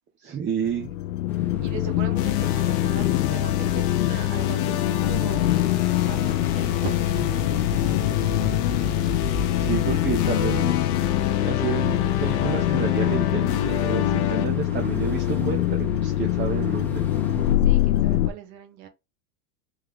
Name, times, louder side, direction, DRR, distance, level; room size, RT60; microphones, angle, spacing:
voice 1, 0.2-0.9 9.6-10.8 11.4-17.1, right 7 dB, 25° right, 0.8 m, -30 dB
sound 1, 0.6-18.3, left 12 dB, 85° left, 0.6 m, -24 dB
sound 2, 1.3-17.5, right 1 dB, 5° left, 1.0 m, -44 dB
voice 2, 1.6-5.4 6.0-7.3 7.7-8.8 10.1-10.2 17.6-18.9, right 8 dB, 60° right, 1.4 m, -39 dB
sound 3, 2.2-14.5, left 10 dB, 55° left, 0.8 m, -29 dB
3.6 x 3.2 x 3.4 m
supercardioid pair, 115°, 42 cm